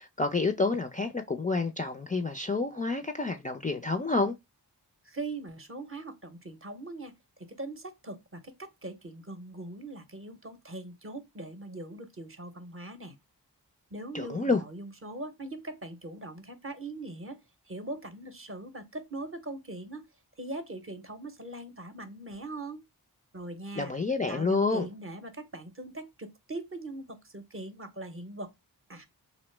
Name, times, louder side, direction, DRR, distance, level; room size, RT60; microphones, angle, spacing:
voice 1, 0.0-4.3 14.1-14.6 23.8-24.9, left 3 dB, 20° left, 0.3 m, -29 dB
voice 2, 5.0-7.1 7.4-13.1 13.9-17.4 17.7-20.0 20.4-22.8 23.3-23.9 24.3-28.5 28.9-29.1, right 2 dB, 30° right, 0.7 m, -41 dB
2.9 x 2.0 x 3.1 m
cardioid pair, 40°, 41 cm